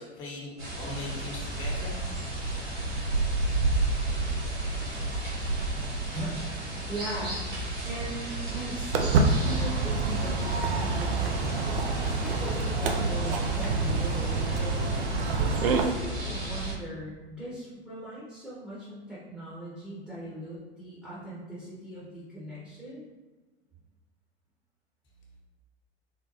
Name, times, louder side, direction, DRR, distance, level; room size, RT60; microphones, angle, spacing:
voice 1, 0.0-2.0, left 2 dB, 50° left, -2 dB, 1.1 m, -40 dB
sound 1, 0.6-16.7, right 2 dB, 75° right, 1.3 m, -32 dB
voice 2, 6.0-7.4 7.9-14.7 15.1-23.1, right 1 dB, ahead, -9 dB, 0.8 m, -39 dB
Walk footsteps, 8.9-15.9, right 3 dB, 60° right, 0.5 m, -27 dB
3.8 x 2.1 x 3.0 m, 1.3 s
figure-of-eight pair, 90°, 34 cm